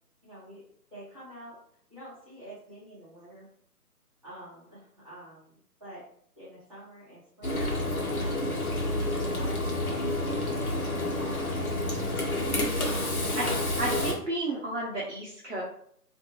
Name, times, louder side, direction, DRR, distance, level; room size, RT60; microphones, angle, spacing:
voice 1, 0.2-0.6 0.9-1.5 1.9-3.5 4.2-5.5 5.8-6.0 6.4-8.5 8.8-13.7, right 1 dB, 20° right, -13 dB, 1.0 m, -47 dB
Frying (food), 7.4-14.1, left 1 dB, 60° left, 1.0 m, -29 dB
voice 2, 13.8-15.6, right 2 dB, 50° right, -5 dB, 0.8 m, -32 dB
2.6 x 2.5 x 2.8 m, 0.64 s
figure-of-eight pair, 170°, 47 cm